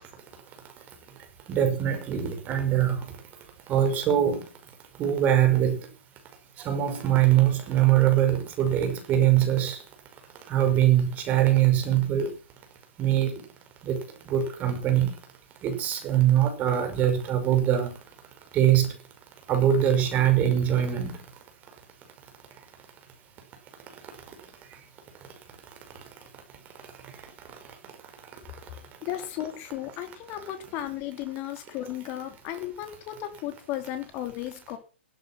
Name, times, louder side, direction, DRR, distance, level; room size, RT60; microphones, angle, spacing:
voice 1, 1.5-2.9 3.7-4.4 5.0-5.7 6.7-9.8 10.5-12.3 13.0-13.3 13.9-14.0 14.3-15.1 15.6-17.9 18.5-18.9 19.5-21.1, right 11 dB, 25° right, 5.5 m, -22 dB
voice 2, 29.0-34.8, left 12 dB, 30° left, 3.8 m, -35 dB
16.5 x 13.0 x 6.1 m
figure-of-eight pair, 125°, 7 cm